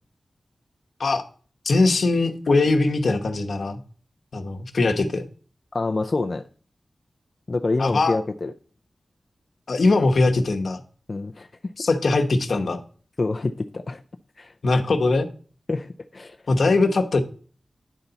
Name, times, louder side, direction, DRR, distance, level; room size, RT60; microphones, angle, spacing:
voice 1, 1.6-3.8 4.3-5.3 7.8-8.2 9.7-10.8 11.8-12.8 14.6-15.3 16.5-17.2, left 3 dB, 70° left, 5 dB, 1.0 m, -21 dB
voice 2, 5.7-6.4 7.5-8.5 11.1-11.7 13.2-14.0 14.4-14.5 15.7-16.4, left 3 dB, 45° left, 6 dB, 0.4 m, -27 dB
10.0 x 4.0 x 5.6 m, 0.41 s
wide cardioid pair, 70°, 0 cm